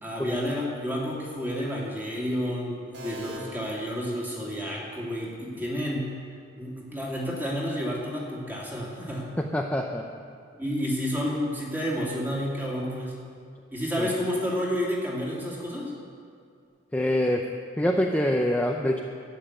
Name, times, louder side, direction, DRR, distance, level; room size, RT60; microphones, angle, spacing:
voice 1, 0.0-6.1 6.6-9.3 10.5-13.2 13.7-15.9, equal, 10° right, -4 dB, 2.4 m, -30 dB
sound 1, 2.9-4.8, right 1 dB, 60° right, 2.1 m, -43 dB
voice 2, 9.4-10.0 14.0-14.1 16.9-17.4 17.8-19.0, left 1 dB, 10° left, 1 dB, 0.5 m, -25 dB
12.5 x 7.5 x 9.2 m, 2.2 s
head